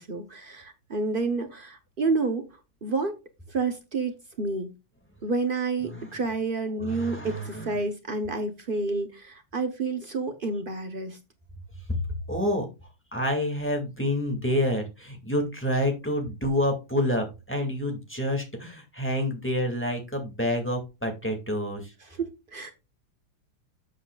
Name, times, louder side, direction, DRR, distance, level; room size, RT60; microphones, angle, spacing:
voice 1, 0.0-3.2 3.5-4.7 5.2-11.2 22.0-22.7, right 3 dB, 90° right, 0.4 m, -29 dB
voice 2, 6.8-7.7 11.9-12.0 12.3-12.7 13.1-21.9, left 1 dB, 5° left, 1.9 m, -28 dB
12.0 x 7.7 x 2.4 m
omnidirectional pair, 2.4 m